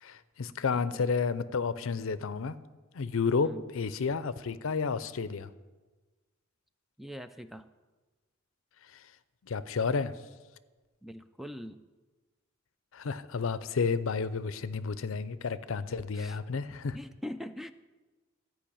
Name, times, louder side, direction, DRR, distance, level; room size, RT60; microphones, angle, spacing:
voice 1, 0.0-2.5 2.9-5.5 9.4-10.1 12.9-17.0, left 5 dB, 70° left, 15 dB, 0.5 m, -31 dB
voice 2, 0.7-1.1 3.4-3.7 7.0-7.7 11.0-11.9 16.1-16.4 16.9-17.7, equal, ahead, 10 dB, 0.3 m, -43 dB
13.5 x 5.3 x 8.6 m, 1.3 s
head